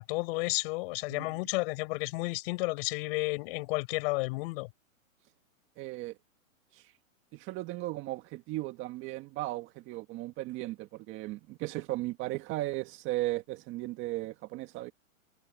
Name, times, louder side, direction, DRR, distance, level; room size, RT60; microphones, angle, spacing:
voice 1, 0.0-4.7, left 25 dB, 45° left, 5.7 m, -32 dB
voice 2, 5.8-6.2 6.7-6.8 7.3-14.9, right 18 dB, 30° right, 1.7 m, -36 dB
hypercardioid pair, 145°, 42 cm